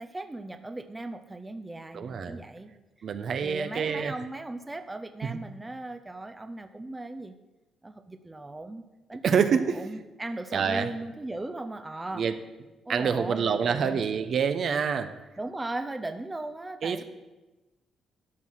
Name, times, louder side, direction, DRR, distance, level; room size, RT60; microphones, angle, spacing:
voice 1, 0.0-2.7 3.3-7.4 7.8-8.8 9.1-9.4 9.7-12.2 12.8-14.0 15.4-17.0, right 2 dB, 15° right, 8 dB, 0.6 m, -37 dB
voice 2, 1.9-2.4 3.0-4.1 5.3-5.4 9.2-9.8 10.5-10.9 12.1-12.3 12.9-15.2 16.8-17.0, right 6 dB, 60° right, 9 dB, 0.8 m, -26 dB
12.5 x 6.1 x 5.7 m, 1.1 s
cardioid pair, 90°, 0 cm